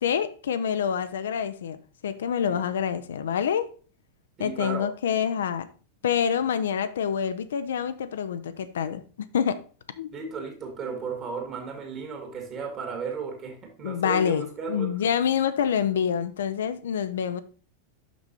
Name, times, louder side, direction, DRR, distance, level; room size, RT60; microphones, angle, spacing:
voice 1, 0.0-3.7 4.4-5.7 6.0-9.6 10.0-10.2 13.8-17.4, left 8 dB, 65° left, 0.5 m, -27 dB
voice 2, 4.4-4.9 10.1-14.9, right 5 dB, 30° right, 2.1 m, -35 dB
6.1 x 6.0 x 4.2 m
figure-of-eight pair, 90°, 0 cm